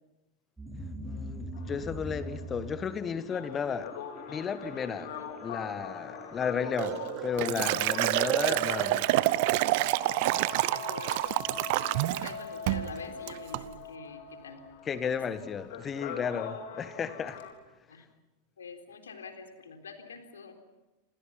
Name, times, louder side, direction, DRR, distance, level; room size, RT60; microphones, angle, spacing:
sound 1, 0.6-13.2, right 1 dB, 10° right, 4.8 m, -46 dB
voice 1, 1.0-3.9 4.3-5.1 5.4-9.1 14.9-17.4, left 6 dB, 20° left, 1.6 m, -33 dB
sound 2, 1.5-17.5, left 6 dB, 55° left, 3.8 m, -43 dB
Liquid, 6.8-12.3 12.7-12.9 13.3-13.6, right 19 dB, 50° right, 0.8 m, -28 dB
voice 2, 10.7-11.4 12.1-14.6 15.0-15.2 17.9-18.0 18.6-20.5, left 5 dB, 70° left, 3.8 m, -46 dB
28.5 x 27.5 x 5.7 m
figure-of-eight pair, 90°, 0 cm